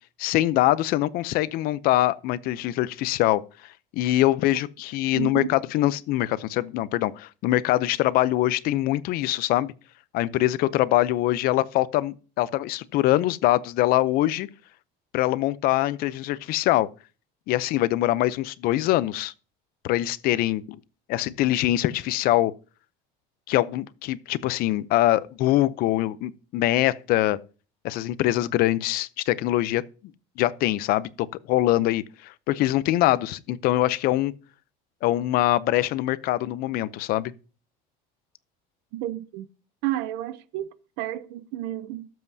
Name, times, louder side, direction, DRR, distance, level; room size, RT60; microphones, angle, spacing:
voice 1, 0.2-3.4 3.9-9.7 10.1-14.5 15.1-16.9 17.5-19.3 19.8-20.8 21.1-22.5 23.5-27.4 27.8-29.8 30.4-34.3 35.0-37.3, left 15 dB, 55° left, 0.6 m, -23 dB
voice 2, 5.1-5.5 38.9-39.5 39.8-40.7 41.0-42.1, right 13 dB, 70° right, 0.7 m, -31 dB
19.5 x 7.6 x 2.7 m
cardioid pair, 155°, 19 cm